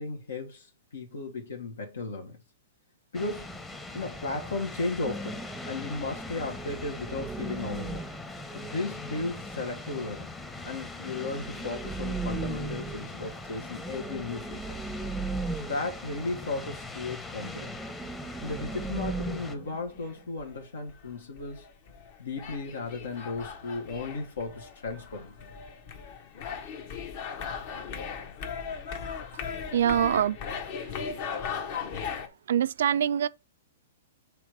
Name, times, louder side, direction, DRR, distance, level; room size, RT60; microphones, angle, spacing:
voice 1, 0.0-2.4 3.1-3.6 3.9-5.4 5.7-8.1 8.5-10.3 10.6-14.8 15.5-17.7 18.4-21.7 22.2-25.4, left 3 dB, 80° left, 1.4 m, -35 dB
sound 1, 3.1-19.6, left 2 dB, 10° left, 0.9 m, -41 dB
sound 2, 5.0-9.9 11.0-16.5 16.8-16.9 17.3-20.2, right 3 dB, 10° right, 0.5 m, -38 dB
sound 3, 19.2-20.1 20.4-32.3, left 6 dB, 50° left, 1.2 m, -38 dB
voice 2, 29.7-30.4 31.0-31.6 32.5-33.3, right 9 dB, 70° right, 0.3 m, -25 dB
5.9 x 3.4 x 4.8 m
hypercardioid pair, 125°, 0 cm